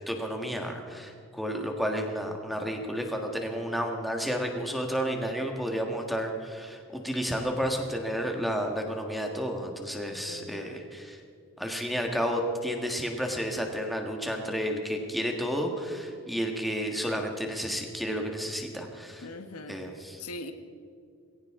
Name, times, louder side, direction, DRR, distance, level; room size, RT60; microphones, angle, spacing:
voice 1, 0.1-11.2 11.6-19.3 19.7-20.2, equal, ahead, 2 dB, 1.6 m, -31 dB
voice 2, 10.3-10.8 19.2-19.8 20.2-20.5, left 2 dB, 85° left, 7 dB, 1.3 m, -41 dB
20.5 x 17.5 x 3.7 m, 2.5 s
head